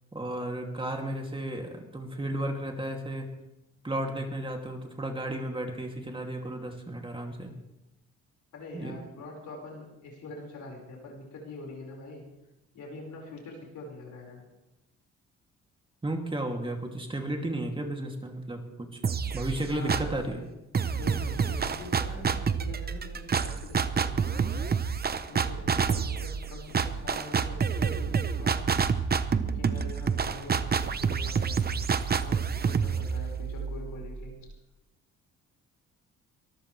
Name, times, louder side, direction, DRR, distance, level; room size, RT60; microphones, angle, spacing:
voice 1, 0.1-3.3 3.8-7.5 8.7-9.0 16.0-19.0 19.3-20.4, right 1 dB, 15° right, 2 dB, 2.6 m, -33 dB
voice 2, 8.5-12.2 12.7-14.4 19.6-20.4 20.9-24.9 25.3-29.0 29.4-31.8 32.2-32.4 32.7-34.3, left 2 dB, 75° left, 0 dB, 5.2 m, -44 dB
sound 1, 19.0-20.3 20.7-34.4, right 6 dB, 30° right, 0.8 m, -28 dB
23.0 x 14.5 x 3.3 m, 0.93 s
cardioid pair, 90°, 30 cm